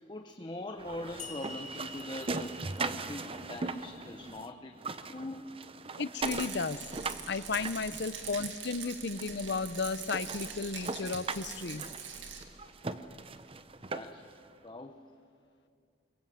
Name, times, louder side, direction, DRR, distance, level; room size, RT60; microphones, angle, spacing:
voice 1, 0.1-5.6 8.8-8.9 12.6-12.7 13.9-14.2 14.6-15.0, left 1 dB, 25° left, 6 dB, 0.9 m, -42 dB
sound 1, 0.8-4.5 4.7-8.5 9.2-9.3 9.7-9.8 10.1-14.3, right 3 dB, 30° right, 0.8 m, -39 dB
sound 2, 1.2-4.6, left 3 dB, 40° left, 2.0 m, -48 dB
voice 2, 6.0-6.8 7.3-11.8, left 4 dB, 60° left, 16 dB, 0.7 m, -34 dB
Rattle, 6.2-12.4, right 7 dB, 80° right, 2.4 m, -43 dB
25.0 x 22.0 x 7.7 m, 2.4 s
head